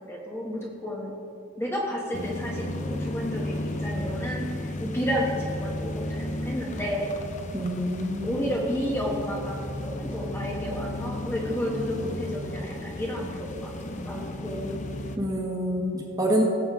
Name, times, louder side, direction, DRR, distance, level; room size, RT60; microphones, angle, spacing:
voice 1, 0.1-1.1 1.6-7.1 8.2-14.8, equal, 10° left, -3 dB, 1.1 m, -31 dB
Harley davidson slow ride, 2.1-15.2, left 1 dB, 35° left, 0.6 m, -34 dB
voice 2, 7.5-8.4 15.2-16.4, equal, 15° right, -1 dB, 1.3 m, -27 dB
17.5 x 7.5 x 3.5 m, 2.7 s
head